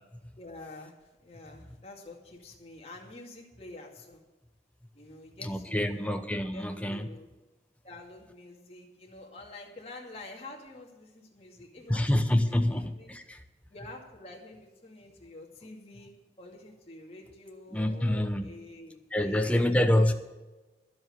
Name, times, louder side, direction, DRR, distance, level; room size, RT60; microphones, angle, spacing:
voice 1, 0.4-4.2 4.9-6.1 6.5-7.3 7.8-13.1 13.7-16.1 16.4-19.7, left 2 dB, 35° left, -1 dB, 2.3 m, -48 dB
voice 2, 5.4-7.1 11.9-13.4 17.7-18.5 19.1-20.1, left 1 dB, 5° left, 6 dB, 0.8 m, -27 dB
11.5 x 7.7 x 8.3 m, 1.1 s
head